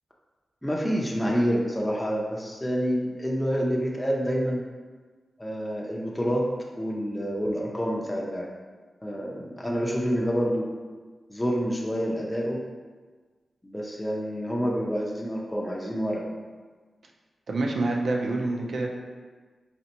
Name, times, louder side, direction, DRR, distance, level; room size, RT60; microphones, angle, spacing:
voice 1, 0.6-4.6 5.4-8.5 9.0-10.7 11.3-12.6 13.6-16.3, equal, 5° left, -3 dB, 0.4 m, -28 dB
voice 2, 17.5-18.9, right 2 dB, 60° right, 1 dB, 0.5 m, -27 dB
4.2 x 3.2 x 2.9 m, 1.4 s
wide cardioid pair, 155°, 0 cm